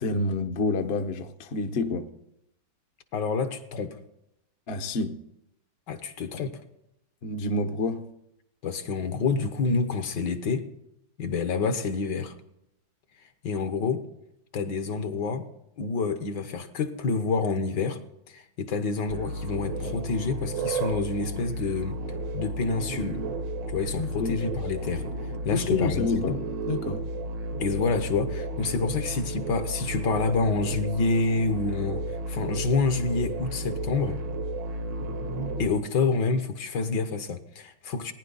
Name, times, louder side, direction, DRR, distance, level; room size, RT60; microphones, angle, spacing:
voice 1, 0.0-2.1 4.7-5.2 7.2-8.1 24.0-24.4 25.5-27.0, left 3 dB, 45° left, 0.9 m, -28 dB
voice 2, 3.1-4.0 5.9-6.6 8.6-10.7 11.2-12.3 13.4-14.1 14.5-15.4 15.8-18.0 18.3-22.0 22.3-23.2 23.7-25.0 25.4-26.4 27.6-34.2 35.6-38.1, left 4 dB, 65° left, 1.6 m, -28 dB
sound 1, 19.1-35.7, right 2 dB, 70° right, 1.7 m, -33 dB
18.5 x 10.5 x 4.0 m
omnidirectional pair, 2.1 m